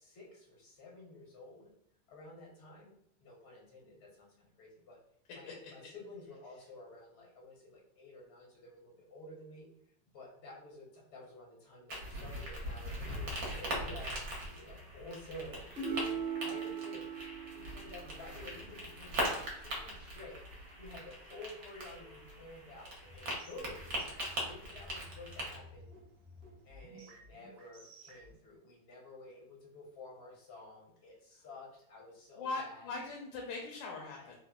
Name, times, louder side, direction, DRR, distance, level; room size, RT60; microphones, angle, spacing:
voice 1, 0.0-1.7 2.1-2.9 3.2-5.0 5.3-9.7 10.1-20.4 20.8-23.9 24.4-25.9 26.6-32.9 34.1-34.4, left 2 dB, 60° left, -3 dB, 0.7 m, -51 dB
sound 1, 11.9-25.5, equal, 60° right, 1.2 m, -41 dB
sound 2, 15.7-19.4 21.9-22.4, right 6 dB, 45° right, 0.8 m, -41 dB
sound 3, 23.0-28.4, left 2 dB, 80° right, 0.5 m, -55 dB
voice 2, 32.4-34.4, left 3 dB, 85° left, -1 dB, 1.3 m, -40 dB
3.4 x 2.0 x 2.2 m, 0.73 s
omnidirectional pair, 2.0 m